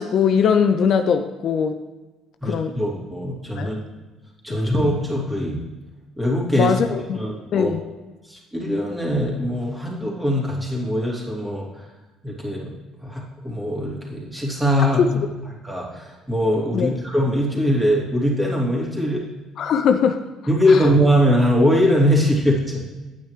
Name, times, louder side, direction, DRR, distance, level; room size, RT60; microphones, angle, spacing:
voice 1, 0.0-1.8 2.4-2.8 3.6-3.8 4.5-4.6 6.6-7.2 7.5-7.8 15.0-15.1 16.7-16.9 19.6-20.2 20.7-20.9, left 7 dB, 55° left, 8 dB, 0.5 m, -20 dB
voice 2, 2.4-3.8 4.4-5.6 6.2-6.8 7.1-7.7 8.3-11.7 12.2-12.7 13.0-15.2 15.6-19.2 20.5-22.8, equal, 10° right, -3 dB, 2.6 m, -21 dB
9.2 x 8.5 x 3.2 m, 1.2 s
hypercardioid pair, 55°, 0 cm